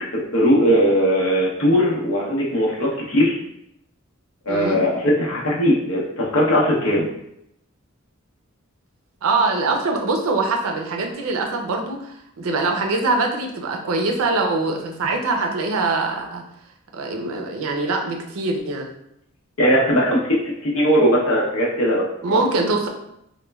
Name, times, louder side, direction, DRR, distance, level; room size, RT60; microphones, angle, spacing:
voice 1, 0.3-3.4 4.5-7.1 19.6-22.1, equal, 75° left, -3 dB, 0.7 m, -19 dB
voice 2, 4.5-4.8 9.2-16.4 16.9-18.9 22.2-22.9, right 3 dB, 80° right, 2 dB, 0.5 m, -23 dB
3.0 x 2.1 x 2.2 m, 0.78 s
head